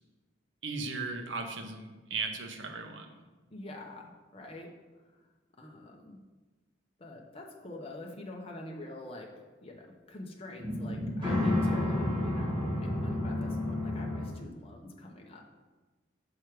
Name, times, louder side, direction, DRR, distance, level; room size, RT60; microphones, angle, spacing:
voice 1, 0.6-3.1, right 4 dB, 70° right, 5 dB, 0.8 m, -36 dB
voice 2, 3.5-4.7 5.6-6.2 7.0-9.3 9.6-15.6, left 1 dB, 30° left, 0 dB, 0.8 m, -46 dB
sound 1, 10.6-14.3, left 1 dB, 25° right, 1.5 m, -30 dB
6.3 x 4.7 x 4.6 m, 1.2 s
head